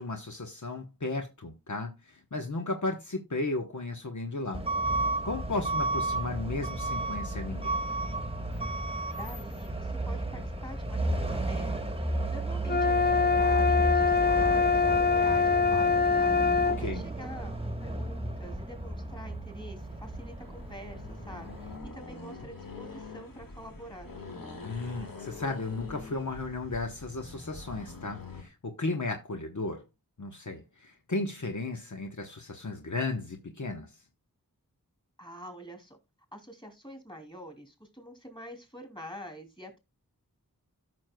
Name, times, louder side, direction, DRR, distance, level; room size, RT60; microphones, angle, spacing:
voice 1, 0.0-4.7 5.2-7.8 16.6-17.0 24.6-29.8 30.2-33.9, left 3 dB, 55° left, 1.1 m, -35 dB
Truck / Alarm, 4.5-21.8, right 2 dB, 15° right, 1.3 m, -33 dB
voice 2, 9.2-24.1 35.2-36.0 36.3-39.8, equal, 15° left, 3.0 m, -46 dB
sound 1, 12.7-16.8, left 5 dB, 30° left, 0.5 m, -24 dB
Accelerating revving vroom, 19.8-28.5, left 3 dB, 75° left, 2.0 m, -45 dB
14.0 x 6.1 x 2.3 m
wide cardioid pair, 50°, 35 cm